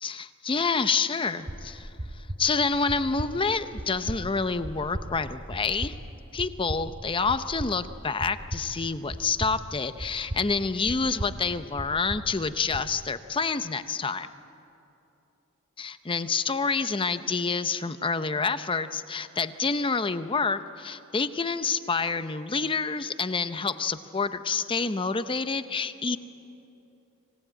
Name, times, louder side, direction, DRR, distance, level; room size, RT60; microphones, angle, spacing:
voice 1, 0.0-1.9 2.4-5.9 6.3-14.3 15.8-26.2, left 4 dB, 25° left, 11 dB, 0.6 m, -28 dB
sound 1, 1.5-12.9, right 1 dB, 25° right, 0.9 m, -38 dB
25.5 x 17.5 x 8.9 m, 2.9 s
head